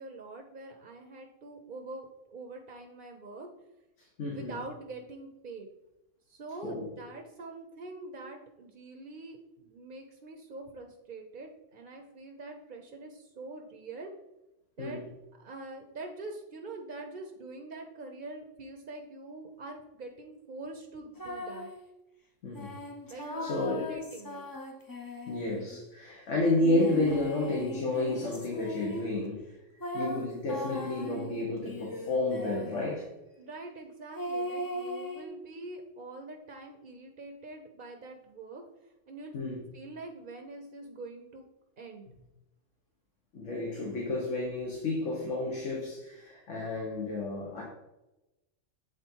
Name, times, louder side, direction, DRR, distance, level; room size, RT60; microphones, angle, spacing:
voice 1, 0.0-3.5 4.3-5.7 6.3-14.1 14.8-15.0 15.4-21.7 23.1-24.5 33.4-38.6 39.1-41.4 41.8-42.1, right 2 dB, 50° right, 3 dB, 0.8 m, -44 dB
voice 2, 4.2-4.5 6.6-6.9 14.8-15.0 22.4-22.8 23.4-23.8 25.3-29.4 29.9-33.1 39.3-39.6 43.3-47.6, left 2 dB, 75° left, -3 dB, 1.7 m, -31 dB
sound 1, 21.2-21.8 22.5-25.8 26.6-29.2 29.8-32.9 34.1-35.3, equal, 25° left, 0.5 m, -39 dB
8.2 x 4.0 x 4.5 m, 0.95 s
omnidirectional pair, 1.3 m